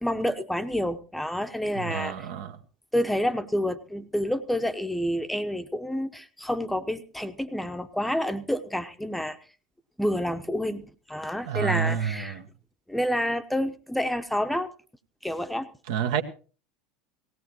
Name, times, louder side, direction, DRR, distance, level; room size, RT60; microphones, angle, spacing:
voice 1, 0.0-2.3 2.9-9.4 10.0-12.4 12.9-14.7 15.2-15.7, equal, 5° left, 9 dB, 1.0 m, -28 dB
voice 2, 1.8-2.5 11.5-12.4 15.9-16.2, right 8 dB, 65° right, 6 dB, 1.3 m, -28 dB
18.5 x 17.0 x 3.0 m, 0.37 s
figure-of-eight pair, 75°, 2 cm